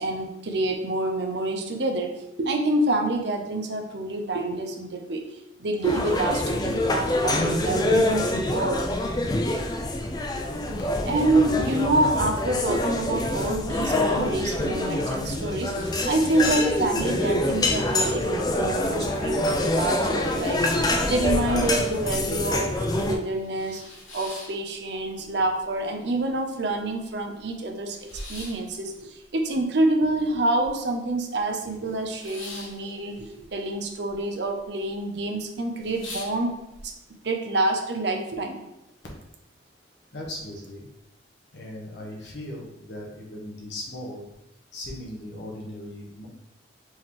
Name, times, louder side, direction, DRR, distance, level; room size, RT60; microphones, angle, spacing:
voice 1, 0.0-2.1 2.4-8.8 11.0-28.0 28.3-36.5 36.8-36.9 37.2-38.6, right 2 dB, 65° right, 3 dB, 0.7 m, -27 dB
sound 1, 5.8-23.2, left 1 dB, 20° left, 0.3 m, -25 dB
voice 2, 11.9-12.3 17.5-17.9 40.1-40.9 41.5-44.3 44.7-46.3, left 1 dB, 65° left, -2 dB, 1.2 m, -37 dB
sound 2, 23.3-25.3 25.6-26.3 26.7-26.8 26.9-31.1 31.4-34.2 34.4-35.0 35.4-35.5 35.8-36.8, left 1 dB, 85° left, 1.1 m, -43 dB
4.5 x 3.1 x 3.7 m, 0.90 s
head